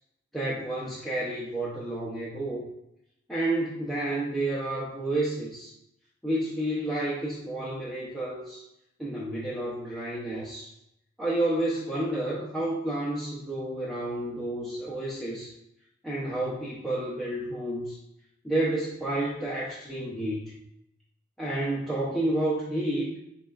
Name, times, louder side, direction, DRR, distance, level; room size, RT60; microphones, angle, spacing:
voice 1, 0.3-2.6 3.3-5.7 6.2-8.7 9.0-10.7 11.2-15.5 16.0-18.0 18.4-20.5 21.4-23.1, right 1 dB, ahead, -8 dB, 0.6 m, -30 dB
4.1 x 3.0 x 2.3 m, 0.81 s
head